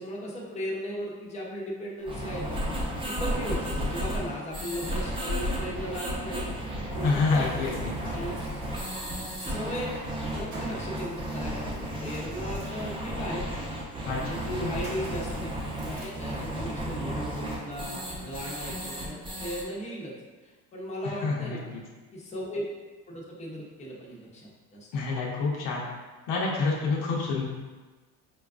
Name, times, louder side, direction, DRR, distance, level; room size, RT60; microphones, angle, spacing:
voice 1, 0.0-2.6 3.1-6.6 6.9-7.7 8.0-8.4 9.4-9.9 10.4-13.5 14.1-20.1 20.4-21.7 22.1-22.6 23.1-24.9, equal, 20° left, -4 dB, 0.7 m, -37 dB
sound 1, 2.0-19.6, equal, 15° right, 0.8 m, -33 dB
voice 2, 7.0-8.0 14.1-14.7 21.0-21.8 24.9-25.8 26.3-27.4, left 4 dB, 60° left, -2 dB, 0.7 m, -28 dB
Bird, 7.0-18.5, right 1 dB, 85° right, 0.9 m, -48 dB
4.4 x 2.3 x 2.4 m, 1.3 s
supercardioid pair, 105°, 37 cm